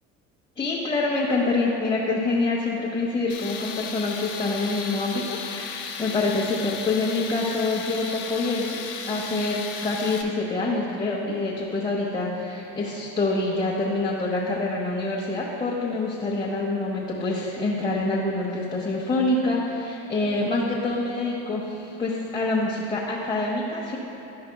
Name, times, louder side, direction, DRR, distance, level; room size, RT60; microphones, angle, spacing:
voice 1, 0.6-8.8 9.1-24.0, left 2 dB, 15° left, -6 dB, 1.0 m, -26 dB
Tools, 3.3-10.2, left 6 dB, 55° left, 0.9 m, -35 dB
12.5 x 5.2 x 2.3 m, 2.8 s
supercardioid pair, 90°, 36 cm